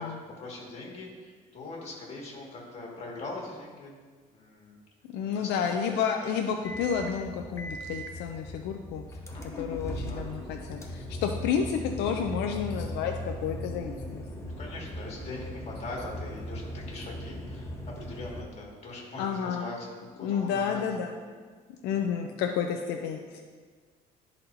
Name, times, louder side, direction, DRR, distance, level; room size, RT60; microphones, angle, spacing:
voice 1, 0.4-3.9 4.3-4.8 5.2-5.5 5.9-6.0 6.2-6.3 9.3-9.6 10.0-10.2 14.6-19.9 20.1-21.0 21.9-22.1, left 2 dB, 40° left, -2 dB, 2.0 m, -41 dB
voice 2, 5.1-9.0 9.6-14.2 19.2-19.7 20.2-21.1 21.8-23.4, left 7 dB, 85° left, 4 dB, 0.5 m, -30 dB
sound 1, 6.6-18.4, equal, 15° left, 0.8 m, -38 dB
12.0 x 4.2 x 2.7 m, 1.5 s
cardioid pair, 110°, 17 cm